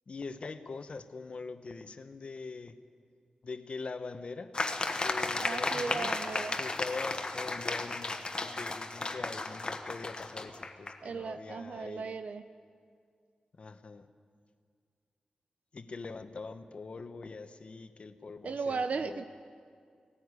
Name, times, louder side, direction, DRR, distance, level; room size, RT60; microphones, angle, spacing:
voice 1, 0.1-2.8 3.4-4.5 4.9-6.2 6.5-12.2 13.6-14.1 15.7-19.3, left 4 dB, 50° left, 10 dB, 1.0 m, -43 dB
sound 1, 4.5-11.0, left 3 dB, 35° left, 1.3 m, -34 dB
voice 2, 5.4-6.6 11.0-12.5 18.4-19.2, right 4 dB, 70° right, 10 dB, 0.6 m, -36 dB
18.0 x 14.5 x 9.7 m, 2.2 s
wide cardioid pair, 105°, 2 cm